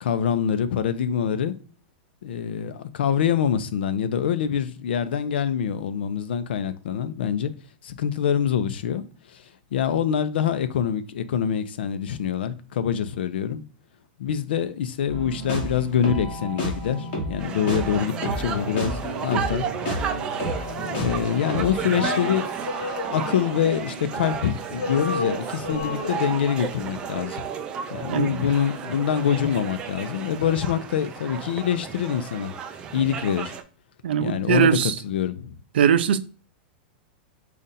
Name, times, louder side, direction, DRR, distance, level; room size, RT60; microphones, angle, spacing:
voice 1, 0.0-1.5 2.2-7.5 7.8-9.0 9.3-9.4 9.7-13.6 14.2-19.7 20.9-22.6 23.1-27.4 27.9-32.5 32.9-33.6 34.2-34.8 35.0-35.6, left 8 dB, 80° left, 0.6 m, -25 dB
sound 1, 15.1-22.0, equal, 30° left, 1.9 m, -31 dB
sound 2, 17.4-33.6, right 7 dB, 15° right, 0.3 m, -33 dB
Male singing, 21.9-24.4 24.7-26.8, left 3 dB, 45° left, 1.9 m, -33 dB
voice 2, 28.1-28.4 34.0-34.9 35.7-36.2, right 8 dB, 85° right, 0.5 m, -20 dB
5.1 x 2.5 x 4.1 m
supercardioid pair, 180°, 6 cm